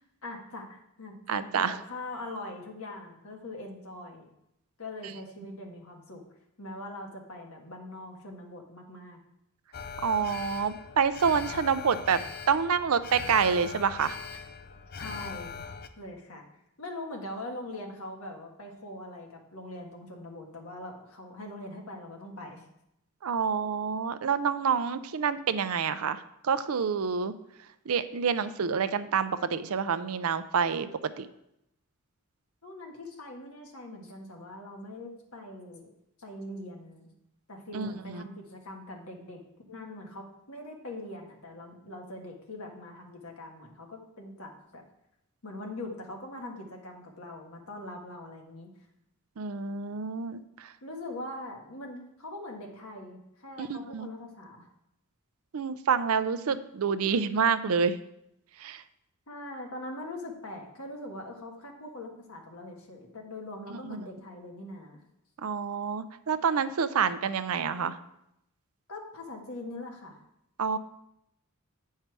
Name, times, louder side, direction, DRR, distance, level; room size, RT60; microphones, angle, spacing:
voice 1, 0.2-4.2 4.8-6.2 6.6-9.2 15.0-15.5 16.0-16.4 16.8-22.6 32.6-35.9 36.2-37.1 37.5-39.4 39.7-44.8 45.4-48.7 50.8-54.7 59.3-65.0 68.9-70.2, left 1 dB, 70° left, 2 dB, 1.5 m, -42 dB
voice 2, 1.3-1.7 10.0-12.2 12.5-14.2 23.2-27.3 27.9-31.3 37.7-38.2 49.4-50.7 53.6-54.1 55.5-58.0 58.6-58.8 63.7-64.1 65.4-68.0 70.6-70.8, right 6 dB, 75° right, 13 dB, 0.5 m, -28 dB
Alarm, 9.7-15.9, left 6 dB, 45° left, 0.5 m, -41 dB
9.0 x 5.6 x 4.7 m, 0.81 s
head